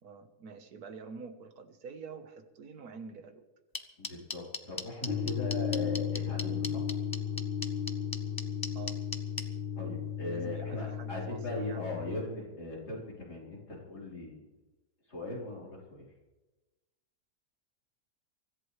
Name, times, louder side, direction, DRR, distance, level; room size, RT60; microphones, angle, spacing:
voice 1, 0.0-3.5 8.8-9.1 10.3-11.9, right 5 dB, 70° right, 7 dB, 1.7 m, -47 dB
sound 1, 3.7-9.4, left 3 dB, 25° left, 0.4 m, -36 dB
voice 2, 4.0-6.9 9.7-14.5 15.1-16.1, left 2 dB, 80° left, -5 dB, 4.9 m, -39 dB
sound 2, 5.1-12.3, left 8 dB, 45° left, 1.1 m, -35 dB
24.0 x 14.0 x 3.3 m, 1.1 s
omnidirectional pair, 1.7 m